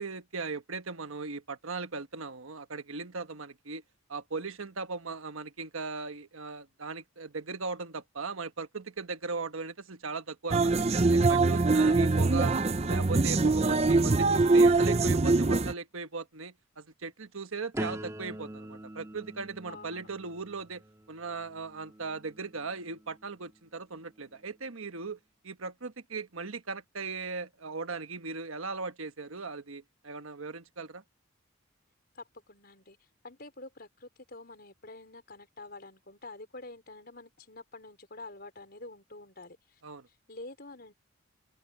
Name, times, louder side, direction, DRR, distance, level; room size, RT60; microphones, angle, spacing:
voice 1, 0.0-3.8 4.1-10.7 11.1-12.5 12.8-20.8 21.1-25.2 25.4-31.0 39.8-40.1, right 4 dB, 75° right, 1.3 m, -38 dB
sound 1, 10.5-15.7, right 3 dB, 30° right, 0.6 m, -23 dB
voice 2, 11.8-12.3 19.6-20.1 32.1-33.0 33.2-39.8 40.1-40.9, left 2 dB, 45° left, 4.7 m, -47 dB
sound 2, 17.7-23.6 24.1-24.6, right 1 dB, 15° right, 1.8 m, -44 dB
open air
head